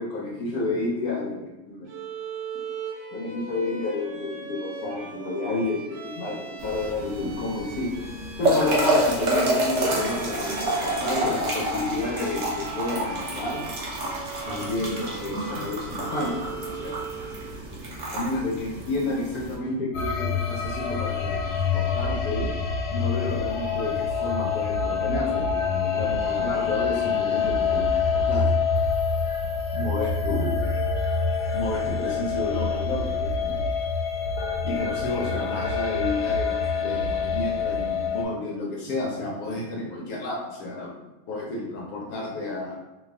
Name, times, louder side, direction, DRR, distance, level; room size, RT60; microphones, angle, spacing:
voice 1, 0.0-1.9 3.1-7.9 8.4-13.7 14.5-17.0 18.1-22.5 22.9-28.5 29.7-30.7 31.5-33.6 34.6-41.0 41.3-42.8, left 2 dB, 70° left, -2 dB, 0.9 m, -30 dB
Bowed string instrument, 1.9-17.6, right 5 dB, 75° right, 1.3 m, -40 dB
sound 1, 6.6-19.6, right 1 dB, 60° right, 0.8 m, -28 dB
sound 2, 19.9-38.3, left 5 dB, 85° left, 1.4 m, -26 dB
3.2 x 2.4 x 3.3 m, 1.1 s
omnidirectional pair, 2.2 m